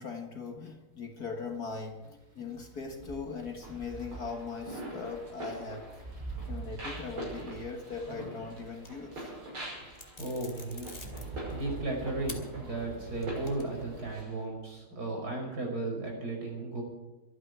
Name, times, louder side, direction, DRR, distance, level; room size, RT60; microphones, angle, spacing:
voice 1, 0.0-6.0 6.5-9.4, left 4 dB, 50° left, 3 dB, 1.9 m, -40 dB
sound 1, 1.5-14.2, right 3 dB, 25° right, 1.7 m, -46 dB
sound 2, 3.6-14.4, right 1 dB, 90° right, 6.4 m, -44 dB
sound 3, 8.8-9.3 9.9-11.8 12.3-12.4 12.9-13.9, left 3 dB, 25° left, 2.6 m, -47 dB
voice 2, 10.2-10.9 11.5-16.8, right 2 dB, 45° right, 0 dB, 5.6 m, -35 dB
24.5 x 9.8 x 4.8 m, 1.1 s
omnidirectional pair, 2.3 m